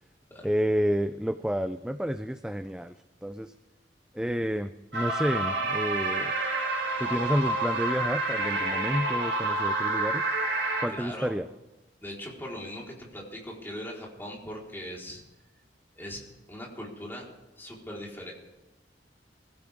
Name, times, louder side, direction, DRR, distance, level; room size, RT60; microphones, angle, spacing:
voice 1, 0.4-2.9 3.2-3.5 4.1-6.3 7.0-10.2 10.8-11.5, equal, 5° right, 10 dB, 0.4 m, -30 dB
sound 1, 4.9-10.9, right 2 dB, 80° right, 3.4 m, -28 dB
voice 2, 10.9-11.4 12.0-15.2 16.0-16.2 16.5-17.3 17.6-18.3, equal, 15° left, -3 dB, 4.2 m, -40 dB
24.0 x 16.0 x 3.6 m, 1.0 s
head